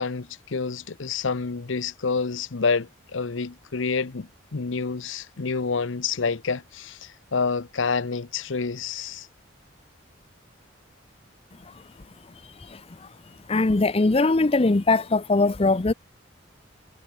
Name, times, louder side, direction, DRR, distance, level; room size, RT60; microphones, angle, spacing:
voice 1, 0.0-9.3, left 5 dB, 80° left, 0.8 m, -28 dB
voice 2, 13.5-15.9, left 3 dB, 30° left, 0.6 m, -21 dB
head